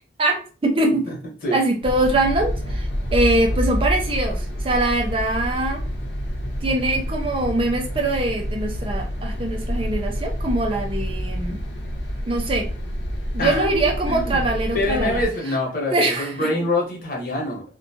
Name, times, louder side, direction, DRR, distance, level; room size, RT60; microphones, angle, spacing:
voice 1, 0.6-1.1 1.5-5.8 6.6-11.6 12.3-12.7 13.3-15.2 15.9-16.5, right 2 dB, 30° right, 2 dB, 0.4 m, -23 dB
sound 1, 1.8-15.3, equal, 85° left, 0.7 m, -27 dB
voice 2, 14.0-14.4 14.7-17.6, left 1 dB, 50° left, -2 dB, 1.0 m, -25 dB
2.7 x 2.2 x 2.7 m, 0.38 s
head